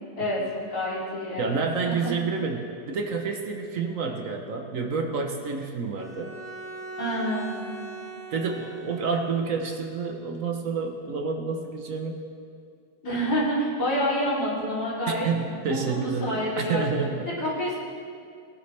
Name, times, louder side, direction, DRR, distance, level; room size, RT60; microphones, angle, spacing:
voice 1, 0.7-1.6 1.9-2.0 7.0-7.7 13.0-16.8 17.4-17.8, equal, 65° left, -9 dB, 4.1 m, -28 dB
voice 2, 1.4-6.3 8.3-12.2 15.1-17.3, right 5 dB, 55° right, 4 dB, 1.2 m, -29 dB
Bowed string instrument, 6.0-9.5, right 2 dB, 90° right, 3.3 m, -40 dB
19.0 x 10.5 x 3.4 m, 2.3 s
omnidirectional pair, 1.9 m